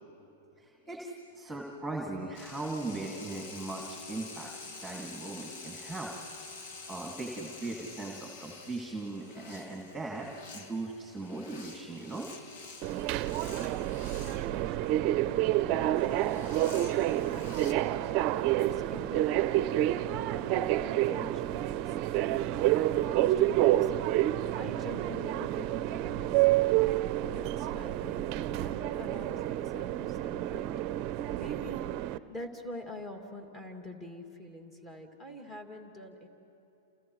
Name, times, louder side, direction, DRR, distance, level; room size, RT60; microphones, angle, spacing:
voice 1, 0.6-6.2 6.9-10.3 10.5-12.3, right 2 dB, 5° right, -1 dB, 2.3 m, -39 dB
sound 1, 2.3-14.5 16.0-17.7, left 3 dB, 55° left, 1.9 m, -47 dB
Subway metro underground, 12.8-32.2, right 14 dB, 45° right, 0.5 m, -29 dB
voice 2, 13.7-15.1 15.7-16.9 17.3-17.9 18.4-24.3 24.6-30.7 31.4-36.3, left 1 dB, 20° left, 3 dB, 2.4 m, -46 dB
29.0 x 29.0 x 3.2 m, 2.9 s
hypercardioid pair, 110°, 0 cm